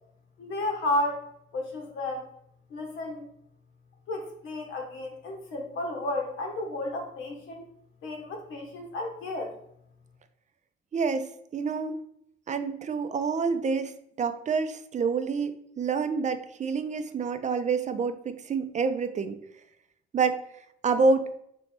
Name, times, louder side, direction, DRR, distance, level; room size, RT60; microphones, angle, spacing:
voice 1, 0.4-1.3 1.5-2.3 2.7-3.3 4.1-7.6 8.0-9.5, left 2 dB, 85° left, 2 dB, 1.1 m, -32 dB
voice 2, 10.9-11.3 11.5-12.0 12.5-19.3 20.1-20.4 20.8-21.3, right 4 dB, 35° right, 9 dB, 0.4 m, -27 dB
3.2 x 3.1 x 4.2 m, 0.72 s
cardioid pair, 90°, 20 cm